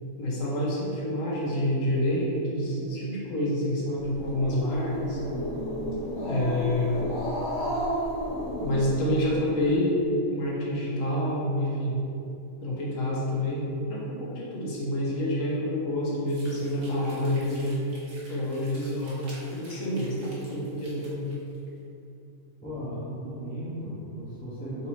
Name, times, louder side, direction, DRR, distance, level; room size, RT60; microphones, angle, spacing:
voice 1, 0.2-5.2 6.2-7.1 8.6-12.0 12.6-17.8 18.3-19.2 19.5-21.3, left 1 dB, 75° left, -5 dB, 1.3 m, -28 dB
Growling, 4.0-9.4, equal, 50° left, 1.8 m, -32 dB
sound 1, 16.3-21.7, right 1 dB, 65° right, 1.4 m, -50 dB
voice 2, 22.6-24.9, equal, 10° left, -11 dB, 0.7 m, -36 dB
4.1 x 3.9 x 3.0 m, 2.7 s
omnidirectional pair, 1.4 m